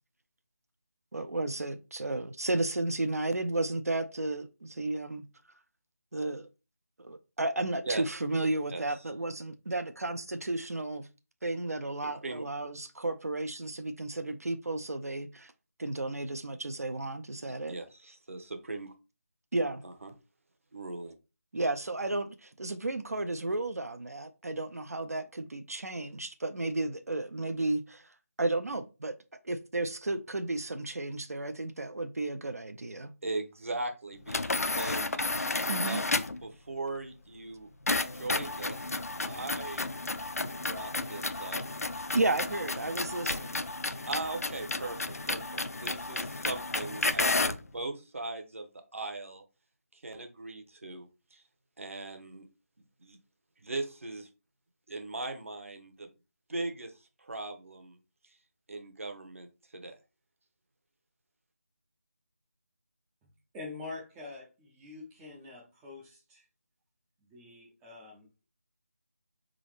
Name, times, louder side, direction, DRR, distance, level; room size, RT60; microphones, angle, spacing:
voice 1, 1.1-5.2 6.1-6.5 7.0-11.1 11.4-15.5 15.8-17.8 19.5-19.8 21.5-28.1 28.4-29.1 29.4-33.1 35.7-36.0 42.1-43.6, right 2 dB, 75° right, 0.6 m, -33 dB
voice 2, 12.0-12.4 17.7-18.9 19.8-20.1 20.7-21.1 33.2-35.1 35.8-37.7 38.1-38.8 39.2-39.9 40.6-41.6 44.0-49.4 49.9-51.4 51.8-52.5 53.0-53.2 53.6-54.3 54.9-56.1 56.5-58.0 58.7-60.0, right 2 dB, 55° right, 0.9 m, -39 dB
sound 1, 34.3-36.5 37.9-47.7, left 3 dB, 70° left, 0.5 m, -32 dB
voice 3, 63.5-66.5 67.2-68.3, left 3 dB, 5° right, 0.4 m, -45 dB
4.1 x 3.8 x 3.2 m
figure-of-eight pair, 160°, 8 cm